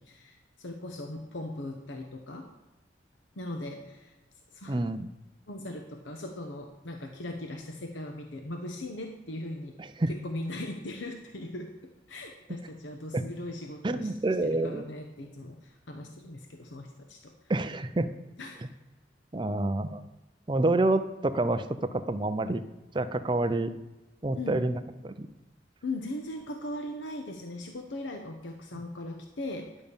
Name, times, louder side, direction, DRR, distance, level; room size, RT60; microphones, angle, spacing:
voice 1, 0.0-2.5 3.3-4.1 4.5-4.9 5.5-9.8 10.1-14.1 14.4-17.3 18.4-18.6 24.3-24.6 25.8-29.7, left 1 dB, 90° left, 4 dB, 0.9 m, -39 dB
voice 2, 4.7-5.1 10.0-10.1 13.1-13.2 13.8-14.9 17.5-18.1 19.3-20.1 20.5-21.6 21.9-22.6 22.9-23.7 24.2-25.3, right 2 dB, 25° right, 10 dB, 0.5 m, -28 dB
11.0 x 5.2 x 7.0 m, 1.1 s
head